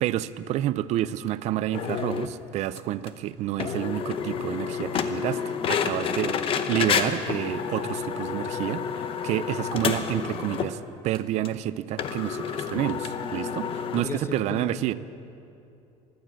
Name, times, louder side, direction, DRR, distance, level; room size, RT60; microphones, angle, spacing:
voice 1, 0.0-5.4 5.7-14.9, right 13 dB, 55° right, 15 dB, 0.5 m, -29 dB
sound 1, 1.7-2.3 2.8-2.9 3.1-3.2 3.6-10.8 11.1-11.2 11.4-11.5 12.0-14.0, left 7 dB, 40° left, 0.8 m, -29 dB
voice 2, 13.9-14.9, left 3 dB, 20° left, 7 dB, 1.1 m, -35 dB
14.5 x 11.5 x 7.6 m, 2.7 s
cardioid pair, 130°, 14 cm